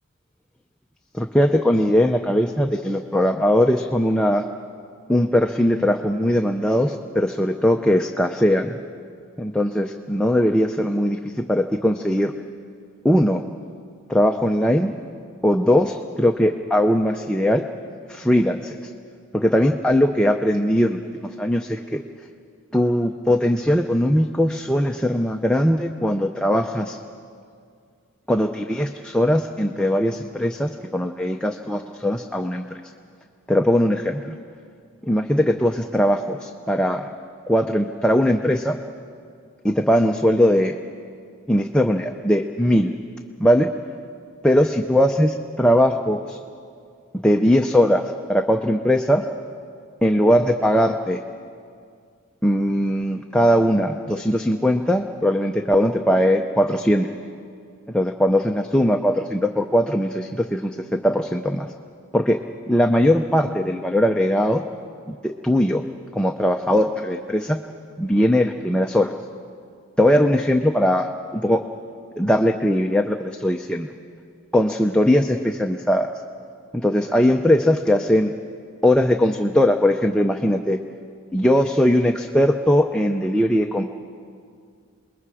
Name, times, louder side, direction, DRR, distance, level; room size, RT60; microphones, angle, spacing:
voice 1, 1.1-4.4 5.1-8.8 9.4-12.3 13.0-13.4 14.1-14.9 15.4-17.6 18.1-18.9 19.3-22.0 22.7-27.0 28.3-32.6 33.5-34.4 35.0-37.1 37.5-38.8 39.6-40.7 41.5-42.9 43.4-43.7 44.4-46.4 47.2-48.0 48.3-49.2 50.0-51.2 52.4-57.1 57.9-60.8 61.0-61.7 62.1-62.4 62.7-64.6 65.2-65.8 66.1-67.6 68.0-69.1 70.0-71.6 72.2-73.9 74.5-76.1 76.7-78.3 78.8-80.8 81.3-83.8, equal, 5° left, 3 dB, 0.5 m, -20 dB
28.0 x 21.0 x 4.9 m, 2.3 s
head